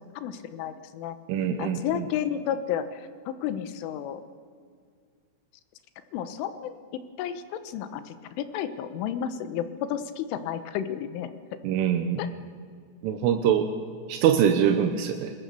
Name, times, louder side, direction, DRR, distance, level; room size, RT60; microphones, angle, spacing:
voice 1, 0.0-1.2 1.6-4.2 6.1-11.3 12.2-12.3, left 9 dB, 85° left, 11 dB, 3.6 m, -32 dB
voice 2, 1.3-1.8 11.6-12.2 13.0-13.7 14.1-15.3, right 9 dB, 85° right, 6 dB, 3.6 m, -23 dB
25.0 x 21.0 x 6.9 m, 2.1 s
omnidirectional pair, 5.5 m